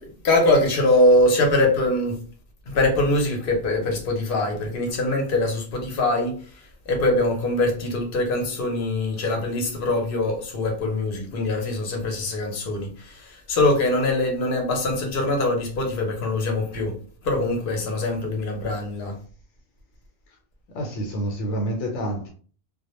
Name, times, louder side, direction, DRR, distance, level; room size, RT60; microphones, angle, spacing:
voice 1, 0.0-2.2 2.7-17.0 17.2-19.1, left 2 dB, 50° left, 0.8 m, -23 dB
voice 2, 20.7-22.3, right 1 dB, 85° left, 1.0 m, -28 dB
2.2 x 2.1 x 3.0 m
omnidirectional pair, 1.4 m